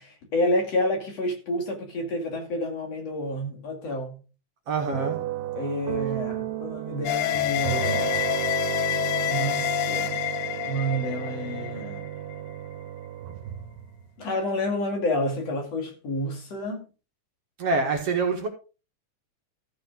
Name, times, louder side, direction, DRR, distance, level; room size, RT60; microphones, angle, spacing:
voice 1, 0.0-4.2 5.6-8.2 9.3-10.2 10.6-12.1 14.2-16.8, left 1 dB, 55° left, 3.5 m, -29 dB
voice 2, 4.7-5.2 9.0-9.1 17.6-18.5, right 4 dB, 50° right, 2.7 m, -26 dB
sound 1, 4.9-14.0, right 12 dB, 85° right, 2.6 m, -33 dB
sound 2, 7.1-12.4, left 14 dB, 80° left, 2.0 m, -28 dB
14.5 x 5.8 x 5.0 m
omnidirectional pair, 3.7 m